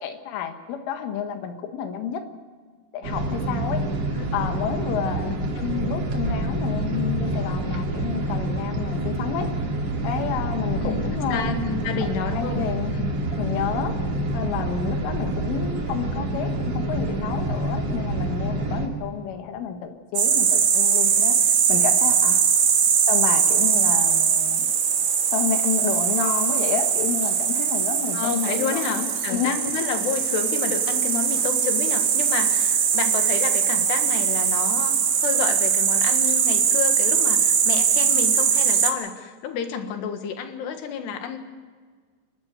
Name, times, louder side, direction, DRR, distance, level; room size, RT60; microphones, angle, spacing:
voice 1, 0.0-2.2 2.9-3.8 4.3-9.5 10.0-11.4 12.3-12.9 13.3-14.0 14.3-22.4 23.1-24.6 25.3-29.5, left 7 dB, 85° left, 6 dB, 4.0 m, -30 dB
sound 1, 3.0-18.9, right 2 dB, 40° right, 2.6 m, -27 dB
voice 2, 10.8-12.6 12.9-13.2 28.1-41.4, left 7 dB, 65° left, 6 dB, 3.5 m, -30 dB
sound 2, 20.2-38.9, right 7 dB, 60° right, 3.6 m, -21 dB
28.5 x 12.5 x 8.1 m, 1.5 s
omnidirectional pair, 5.5 m